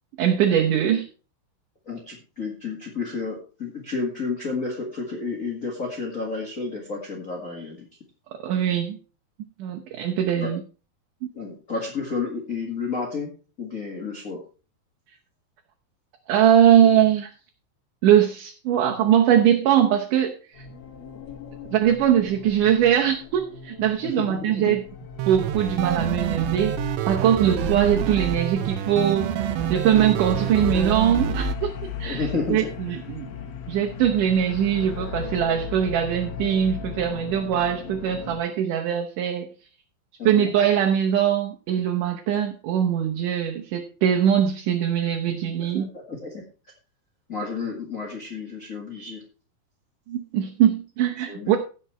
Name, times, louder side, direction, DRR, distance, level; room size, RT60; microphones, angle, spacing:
voice 1, 0.2-1.0 8.4-9.0 9.6-10.6 16.3-17.3 18.0-20.4 21.7-24.8 25.3-26.8 27.1-32.2 32.5-33.3 33.7-39.5 40.3-45.9 50.1-51.6, right 9 dB, 70° right, 2 dB, 2.3 m, -21 dB
voice 2, 1.8-7.9 10.4-10.5 11.3-13.3 13.6-14.4 24.0-24.7 32.0-33.0 40.2-40.5 45.6-46.4 47.3-49.2 51.2-51.6, left 4 dB, 30° left, -1 dB, 1.7 m, -31 dB
sound 1, 20.5-38.4, left 7 dB, 65° left, 1.8 m, -36 dB
sound 2, 25.2-31.6, right 11 dB, 85° right, 2.6 m, -27 dB
16.0 x 5.5 x 4.4 m, 0.35 s
omnidirectional pair, 4.3 m